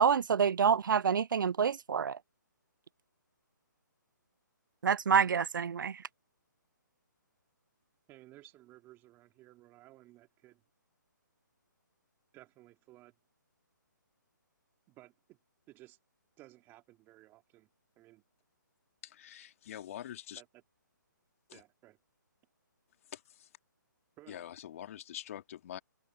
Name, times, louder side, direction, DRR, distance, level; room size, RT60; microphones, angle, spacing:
voice 1, 0.0-2.2 4.8-6.0, right 7 dB, 75° right, 0.4 m, -27 dB
voice 2, 8.1-10.6 12.3-13.1 14.9-15.4 15.7-16.0 16.4-17.7 18.0-18.2 20.4-20.6 21.5-22.0 24.2-24.5, right 17 dB, 20° right, 3.1 m, -57 dB
voice 3, 19.0-20.4 21.5-21.6 23.1-23.5 24.3-25.8, left 11 dB, 45° left, 2.4 m, -45 dB
open air
hypercardioid pair, 145°, 11 cm